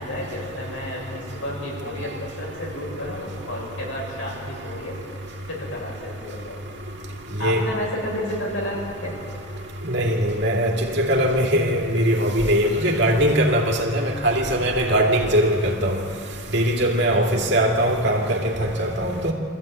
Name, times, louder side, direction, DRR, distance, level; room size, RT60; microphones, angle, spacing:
voice 1, 0.0-4.9 5.5-6.6 7.4-9.2, left 1 dB, 65° left, 6.7 m, -31 dB
voice 2, 9.8-16.0 16.5-19.3, equal, 55° right, 2.6 m, -21 dB
24.5 x 14.5 x 9.0 m
head